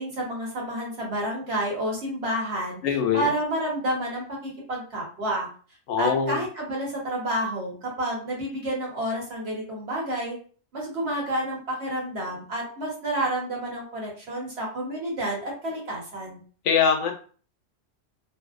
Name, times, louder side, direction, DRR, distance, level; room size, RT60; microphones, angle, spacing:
voice 1, 0.0-2.8 3.1-5.5 6.0-10.4 10.7-16.4, right 1 dB, 60° right, -2 dB, 1.1 m, -29 dB
voice 2, 2.8-3.3 5.9-6.4 16.7-17.1, left 7 dB, 80° left, 4 dB, 0.9 m, -22 dB
2.6 x 2.0 x 2.4 m, 0.41 s
omnidirectional pair, 1.3 m